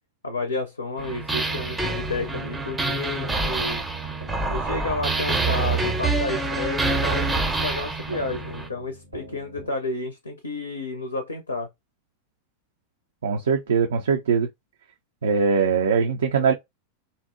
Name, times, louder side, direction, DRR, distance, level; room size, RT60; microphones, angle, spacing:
voice 1, 0.2-3.8 4.5-11.7, left 2 dB, 80° left, 0.4 m, -31 dB
sound 1, 1.0-8.7, right 3 dB, 10° right, 0.5 m, -26 dB
sound 2, 1.4-9.7, equal, 90° right, 0.9 m, -44 dB
voice 2, 13.2-14.5 15.2-16.5, right 5 dB, 65° right, 0.3 m, -21 dB
2.6 x 2.0 x 2.4 m
figure-of-eight pair, 90°, 0 cm